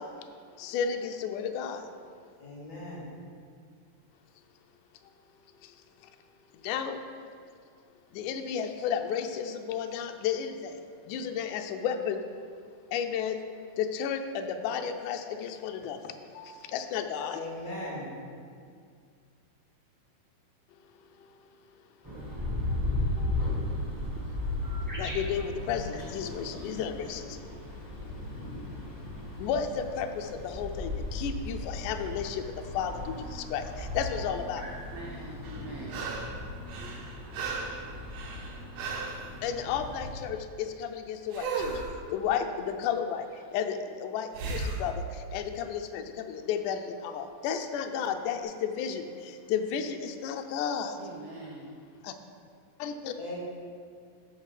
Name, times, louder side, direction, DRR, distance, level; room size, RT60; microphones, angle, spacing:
voice 1, 0.6-1.8 6.6-7.0 8.1-10.5 11.1-12.2 12.9-13.4 13.8-16.0 16.4-17.4 25.0-27.2 29.4-32.4 32.7-34.7 39.4-41.7 42.1-43.2 43.5-44.9 45.3-49.0 49.5-50.9 52.0-52.1 52.8-53.1, left 7 dB, 80° left, 6 dB, 2.0 m, -32 dB
voice 2, 2.4-3.1 17.3-18.1 53.2-53.4, left 1 dB, 40° left, -5 dB, 2.9 m, -38 dB
sound 1, 22.0-40.1, left 2 dB, 25° right, 0.4 m, -36 dB
voice 3, 34.9-36.2 51.0-51.8, right 2 dB, 85° right, -1 dB, 1.3 m, -44 dB
sound 2, 35.4-36.4 36.7-39.3 41.3-41.9 44.3-44.9 47.8-47.9, right 4 dB, 65° right, 1.9 m, -35 dB
13.0 x 5.1 x 4.9 m, 2.2 s
omnidirectional pair, 3.9 m